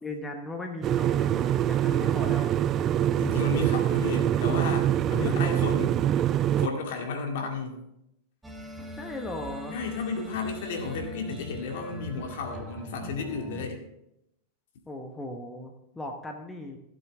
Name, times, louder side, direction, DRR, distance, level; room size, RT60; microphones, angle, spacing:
voice 1, 0.0-2.5 5.2-5.4 8.9-9.8 14.9-16.8, left 1 dB, 10° left, 3 dB, 1.2 m, -38 dB
sound 1, 0.8-6.7, right 11 dB, 30° right, 0.3 m, -24 dB
voice 2, 3.2-6.2 6.6-7.8 9.7-13.8, left 4 dB, 55° left, 2 dB, 2.2 m, -33 dB
sound 2, 8.4-13.7, left 1 dB, 5° right, 1.4 m, -41 dB
16.0 x 7.6 x 3.7 m, 0.82 s
figure-of-eight pair, 90°, 0 cm